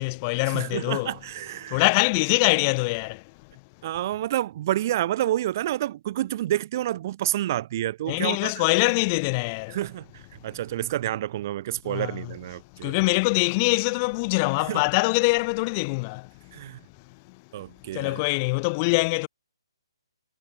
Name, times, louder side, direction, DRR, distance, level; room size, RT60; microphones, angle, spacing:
voice 1, 0.0-1.1 1.7-3.5 8.1-9.8 10.5-10.6 11.8-12.3 12.8-16.6 17.1-17.4 17.7-19.3, left 28 dB, 30° left, 2.6 m, -24 dB
voice 2, 0.5-1.8 3.8-8.6 9.7-10.0 10.4-12.9 14.7-14.8 16.5-16.8 17.5-18.2, right 13 dB, 40° right, 1.9 m, -29 dB
figure-of-eight pair, 135°, 3 cm